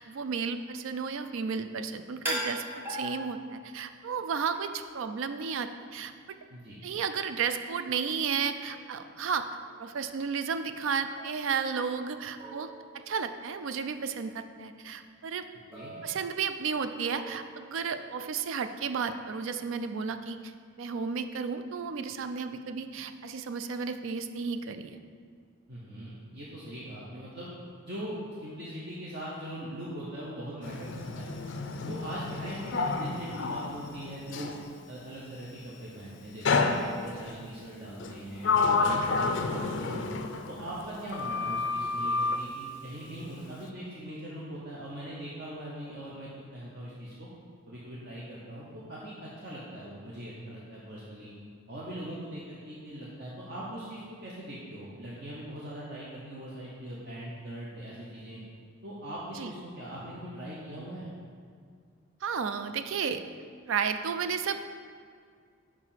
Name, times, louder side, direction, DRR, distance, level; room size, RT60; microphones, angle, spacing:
voice 1, 0.0-6.1 6.8-9.5 9.8-12.7 12.9-15.4 16.0-20.5 20.8-25.0 59.4-59.5 62.2-63.2 63.7-64.6, right 6 dB, 65° right, 10 dB, 0.4 m, -33 dB
sound 1, 2.2-3.9 4.5-5.0 8.9-9.0 9.6-9.9 11.2-12.1 12.4-13.5 13.9-14.1 15.7-16.7 17.1-17.8, equal, 10° right, 1.0 m, -40 dB
voice 2, 25.7-27.5 27.8-31.3 31.9-34.6 34.9-40.1 40.5-47.3 47.7-51.3 51.7-58.4 58.8-61.1, right 1 dB, 50° right, -6 dB, 0.8 m, -41 dB
Sliding door, 30.6-34.6 36.4-37.3 38.0-40.9 41.1-42.4, left 4 dB, 55° left, 0.4 m, -30 dB
4.9 x 4.8 x 5.6 m, 2.1 s
head